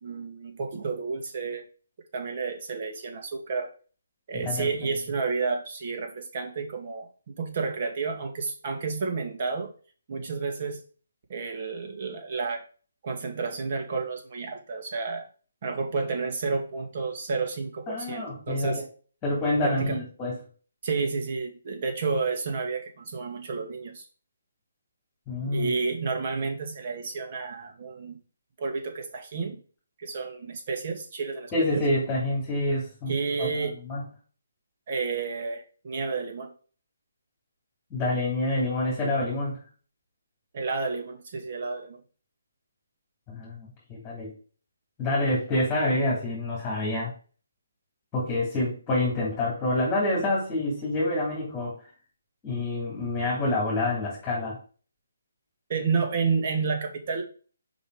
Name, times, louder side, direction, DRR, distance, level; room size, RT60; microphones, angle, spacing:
voice 1, 0.0-1.7 2.1-3.7 4.3-9.7 10.1-10.8 11.3-12.6 13.0-15.2 15.6-18.8 19.6-20.0 20.8-24.1 25.5-28.2 28.6-29.6 30.0-31.8 33.1-33.7 34.9-36.5 40.5-42.0 55.7-57.2, right 4 dB, 45° right, 3 dB, 2.1 m, -30 dB
voice 2, 17.9-18.8 19.2-20.3 25.3-25.7 31.5-33.1 33.4-34.0 37.9-39.6 43.3-44.3 45.0-47.1 48.1-51.7 52.4-54.6, left 1 dB, 15° left, -4 dB, 3.1 m, -27 dB
5.6 x 5.3 x 4.9 m, 0.40 s
hypercardioid pair, 155°, 0 cm